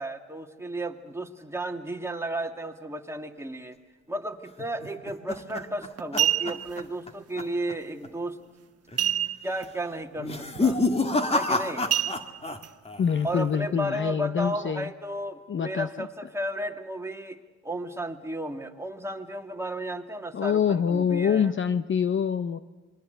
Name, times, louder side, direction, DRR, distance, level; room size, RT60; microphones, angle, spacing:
voice 1, 0.0-3.8 4.1-8.4 9.4-10.8 11.3-11.9 13.2-21.5, right 1 dB, 10° right, 4 dB, 2.3 m, -33 dB
sound 1, 4.6-7.1 7.4-7.7 8.0-8.1 8.9-9.3 10.2-12.6 12.8-13.4, left 3 dB, 20° left, 2.1 m, -28 dB
sound 2, 5.3-5.5 6.0-6.8 9.0-9.7 10.0-10.1 10.6-10.8 11.9-12.7 13.3-13.4, right 12 dB, 55° right, 1.3 m, -27 dB
voice 2, 13.0-14.9 15.5-15.9 20.3-22.6, left 7 dB, 40° left, 13 dB, 0.8 m, -25 dB
27.5 x 22.0 x 8.1 m, 1.3 s
cardioid pair, 90°, 30 cm